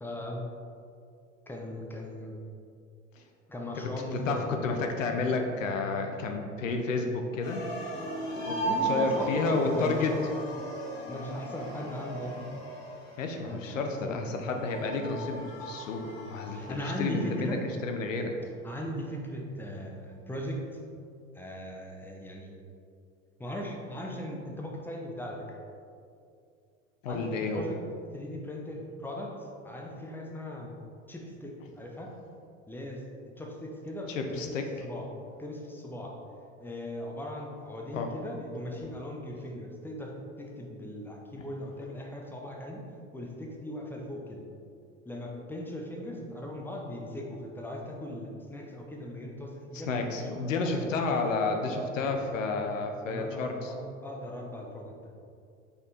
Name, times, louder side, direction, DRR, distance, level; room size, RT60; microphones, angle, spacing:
voice 1, 0.0-0.5 1.5-2.4 3.5-4.6 8.7-10.4 11.1-12.7 13.5-14.3 16.5-17.6 18.6-20.8 21.3-22.6 23.4-25.6 27.1-27.8 28.1-30.7 31.1-32.1 32.7-33.0 33.4-34.5 34.8-35.1 35.4-36.1 36.6-42.8 43.1-44.4 45.0-50.9 51.7-52.0 53.1-54.9, left 1 dB, 5° left, 0 dB, 0.9 m, -38 dB
voice 2, 4.3-7.7 8.3-10.3 13.2-17.6 17.8-18.4 27.0-27.6 34.1-34.7 37.9-38.1 38.8-38.9 49.9-53.7, left 3 dB, 80° left, 4 dB, 0.7 m, -31 dB
sound 1, 7.4-17.8, right 2 dB, 50° left, 1.3 m, -37 dB
5.5 x 4.2 x 4.1 m, 2.4 s
figure-of-eight pair, 70°, 38 cm